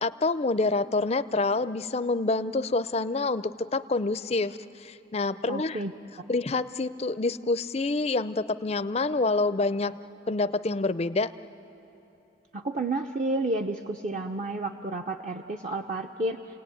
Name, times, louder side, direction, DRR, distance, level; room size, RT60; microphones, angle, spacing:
voice 1, 0.0-5.8 6.3-10.0 10.3-11.3, left 3 dB, 30° left, 14 dB, 0.5 m, -27 dB
voice 2, 5.5-5.9 12.5-16.4, right 2 dB, 40° right, 3 dB, 0.7 m, -31 dB
29.5 x 18.0 x 9.4 m, 2.9 s
head